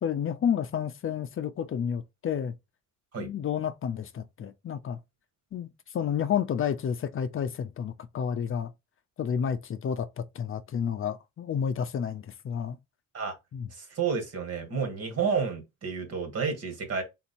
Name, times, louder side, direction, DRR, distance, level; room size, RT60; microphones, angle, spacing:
voice 1, 0.0-2.5 3.2-5.0 5.5-5.7 5.9-8.7 9.2-12.8 13.5-13.7, left 8 dB, 45° left, 0.5 m, -30 dB
voice 2, 13.8-17.0, right 5 dB, 55° right, 1.9 m, -30 dB
3.9 x 2.7 x 4.2 m
cardioid pair, 90°, 30 cm